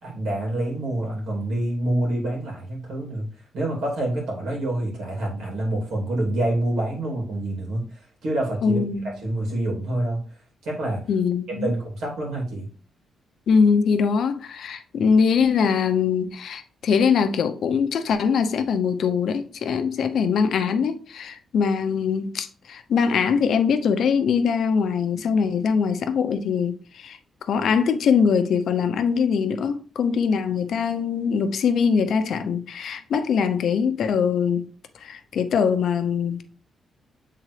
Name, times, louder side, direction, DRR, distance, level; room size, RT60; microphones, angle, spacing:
voice 1, 0.0-3.3 3.5-10.2 10.6-11.0 11.5-12.7, right 1 dB, 85° right, 2.9 m, -27 dB
voice 2, 8.6-9.1 11.1-11.7 13.5-27.2 27.5-34.7 35.0-36.4, left 6 dB, 60° left, 0.7 m, -22 dB
7.6 x 3.8 x 3.3 m
wide cardioid pair, 180°, 0 cm